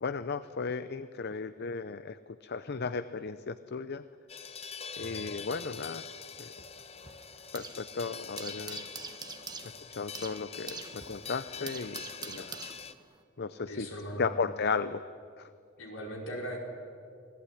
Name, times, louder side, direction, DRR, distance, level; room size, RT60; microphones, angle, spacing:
voice 1, 0.0-4.0 5.0-6.0 6.4-6.5 7.5-8.8 9.9-12.6 13.4-13.9 14.2-15.0 15.4-15.5, left 4 dB, 50° left, 13 dB, 0.6 m, -35 dB
sound 1, 4.3-12.9, left 6 dB, 30° left, 0.9 m, -44 dB
sound 2, 5.8-7.9 8.1-13.2, right 5 dB, 20° right, 1.2 m, -45 dB
voice 2, 13.7-14.3 15.8-16.6, equal, 65° left, 1 dB, 5.2 m, -39 dB
27.0 x 18.5 x 9.9 m, 2.4 s
head